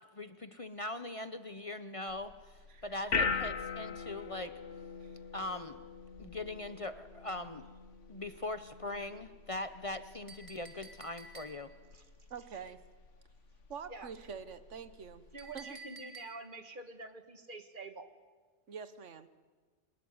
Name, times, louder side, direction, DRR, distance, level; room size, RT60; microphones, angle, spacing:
voice 1, 0.1-2.5 2.8-4.5 5.3-5.8 6.2-7.7 8.1-11.7, left 2 dB, 30° left, 10 dB, 0.8 m, -41 dB
sound 1, 2.1-15.6, left 5 dB, 90° left, 1.6 m, -42 dB
Chink clink, 10.3-11.9 15.4-16.7, right 2 dB, 25° right, 2.7 m, -51 dB
voice 2, 12.3-12.8 13.7-15.2 15.5-15.8 18.7-19.3, right 6 dB, 85° right, 12 dB, 1.5 m, -45 dB
voice 3, 15.3-18.1, right 3 dB, 45° right, 8 dB, 1.8 m, -47 dB
24.0 x 20.5 x 9.5 m, 1.4 s
omnidirectional pair, 1.2 m